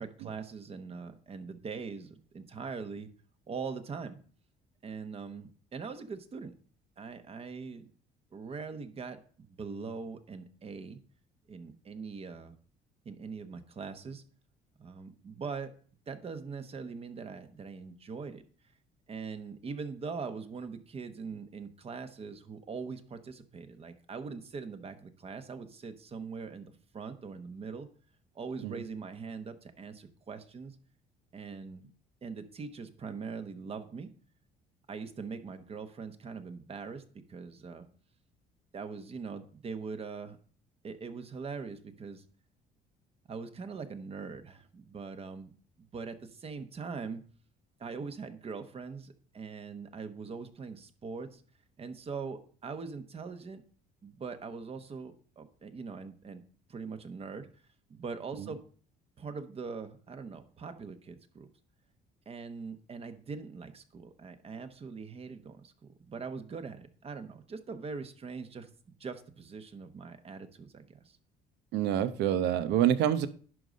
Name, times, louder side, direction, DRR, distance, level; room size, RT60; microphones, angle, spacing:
voice 1, 0.0-3.1 3.5-4.2 4.8-6.5 7.0-7.9 8.3-11.0 11.5-12.6 13.0-14.2 14.8-15.7 16.1-18.4 19.1-27.9 28.3-30.7 31.3-31.9 32.2-34.1 34.9-37.0 37.3-37.9 38.7-40.4 40.8-42.2 43.3-45.5 45.9-47.2 47.8-51.4 51.8-53.6 54.0-56.4 56.7-57.5 57.9-58.6 59.2-61.5 62.3-68.7 69.0-71.2, right 5 dB, 35° right, 9 dB, 1.1 m, -42 dB
voice 2, 71.7-73.3, right 10 dB, 80° right, 12 dB, 0.8 m, -26 dB
11.0 x 4.0 x 6.3 m, 0.44 s
cardioid pair, 110°, 17 cm